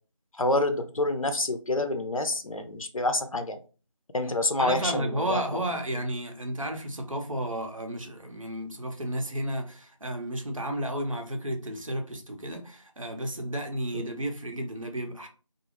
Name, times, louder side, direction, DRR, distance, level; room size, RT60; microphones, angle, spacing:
voice 1, 0.4-3.6 4.1-5.4, left 2 dB, 90° left, 0.5 m, -27 dB
voice 2, 4.6-15.3, right 1 dB, 75° right, 0.7 m, -32 dB
2.3 x 2.0 x 3.1 m
figure-of-eight pair, 175°, 17 cm